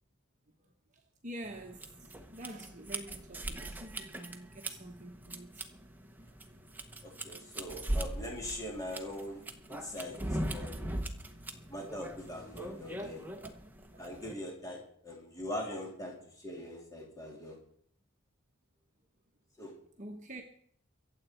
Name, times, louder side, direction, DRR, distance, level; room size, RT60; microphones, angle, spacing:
voice 1, 1.2-5.7 7.2-7.4 13.4-13.5 20.0-20.4, right 1 dB, 35° right, 1.2 m, -47 dB
sound 1, 1.4-14.3, right 1 dB, 10° right, 0.9 m, -40 dB
voice 2, 7.0-11.0 11.7-13.3 14.0-17.6 19.6-19.7, left 1 dB, 15° left, 2.8 m, -42 dB
24.0 x 8.1 x 4.4 m
head